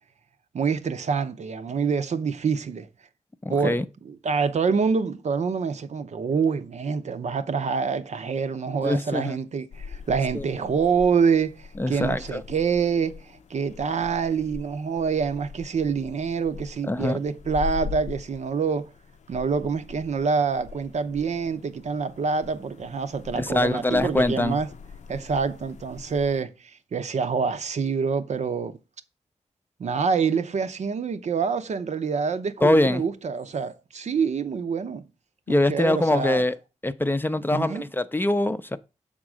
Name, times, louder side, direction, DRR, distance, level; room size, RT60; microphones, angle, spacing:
voice 1, 0.5-2.9 3.5-18.9 19.3-24.7 25.1-28.8 29.8-35.1 35.5-36.4 37.5-37.8, right 5 dB, 70° right, 0.7 m, -26 dB
voice 2, 3.4-3.8 8.8-9.4 10.3-10.5 11.8-12.4 16.9-17.2 23.3-24.6 32.6-33.0 35.5-36.5 36.8-38.8, left 1 dB, 15° left, 0.5 m, -23 dB
sound 1, 9.7-26.4, left 5 dB, 85° left, 0.6 m, -42 dB
7.3 x 3.8 x 6.1 m
wide cardioid pair, 115°, 12 cm